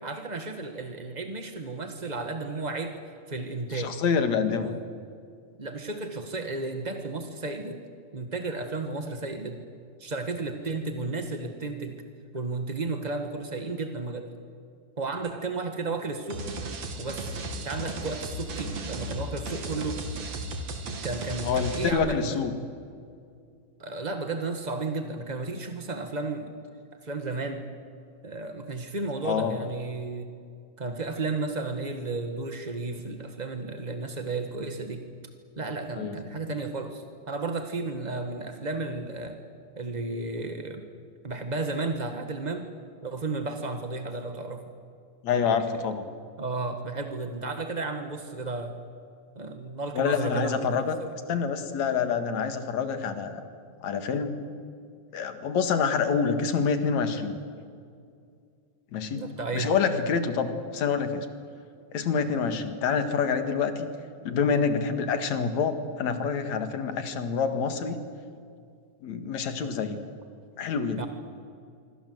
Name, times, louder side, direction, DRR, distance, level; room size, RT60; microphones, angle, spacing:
voice 1, 0.0-2.9 3.3-3.9 4.5-4.8 5.6-7.8 8.1-9.6 10.0-12.0 12.3-14.3 15.0-16.4 17.0-17.4 17.6-20.0 21.0-22.4 23.8-26.5 27.0-27.7 28.2-30.3 30.8-35.0 35.6-39.4 39.8-40.8 41.2-42.7 43.0-44.6 46.4-48.7 49.3-51.1 59.1-59.8 71.0-71.1, right 3 dB, 30° right, 6 dB, 0.7 m, -33 dB
voice 2, 3.7-4.7 21.4-22.5 29.2-29.6 36.0-36.2 45.2-46.0 49.9-51.0 51.3-53.4 53.8-54.4 55.1-57.4 58.9-59.3 59.5-61.3 61.9-63.9 64.2-68.0 69.0-70.0 70.6-71.0, left 6 dB, 70° left, 8 dB, 3.1 m, -27 dB
sound 1, 16.3-21.9, right 2 dB, 60° right, 3.8 m, -35 dB
26.0 x 24.5 x 7.9 m, 2.3 s
omnidirectional pair, 3.4 m